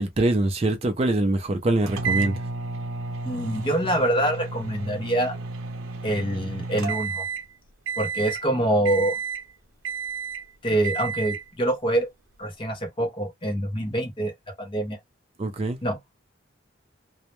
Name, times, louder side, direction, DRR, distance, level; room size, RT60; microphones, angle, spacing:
voice 1, 0.0-2.4 15.4-15.8, right 2 dB, 30° right, 0.4 m, -23 dB
sound 1, 1.9-7.5 7.9-8.4 8.9-9.5 9.8-10.5 10.8-11.5, right 5 dB, 90° right, 0.5 m, -31 dB
voice 2, 3.2-5.4 6.0-7.2 8.0-9.2 10.6-12.1 12.4-15.0 15.8-16.0, right 1 dB, 25° left, 0.6 m, -25 dB
2.1 x 2.0 x 2.9 m
head